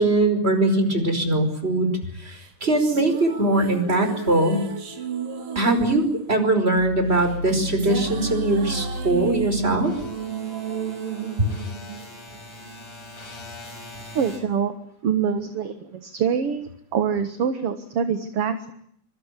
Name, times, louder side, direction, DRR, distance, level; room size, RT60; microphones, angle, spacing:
voice 1, 0.0-4.6 5.6-9.9 11.4-11.5, right 2 dB, 15° right, 7 dB, 5.2 m, -21 dB
sound 1, 2.3-12.7, right 7 dB, 85° right, 4.7 m, -33 dB
sound 2, 6.8-14.4, left 1 dB, 65° left, 8.0 m, -35 dB
voice 2, 14.1-14.7 15.0-18.7, right 7 dB, 50° right, 9 dB, 2.1 m, -25 dB
26.0 x 24.0 x 8.4 m, 0.68 s
omnidirectional pair, 3.7 m